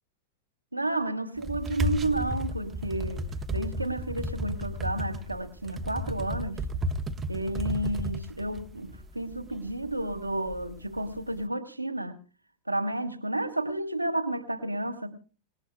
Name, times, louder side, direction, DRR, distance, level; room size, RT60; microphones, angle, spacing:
voice 1, 0.7-6.7 7.3-12.2 12.7-15.1, right 1 dB, 85° right, 1.7 m, -31 dB
sound 1, 1.4-11.3, equal, 20° right, 1.2 m, -33 dB
27.0 x 19.0 x 2.3 m
figure-of-eight pair, 90°, 0 cm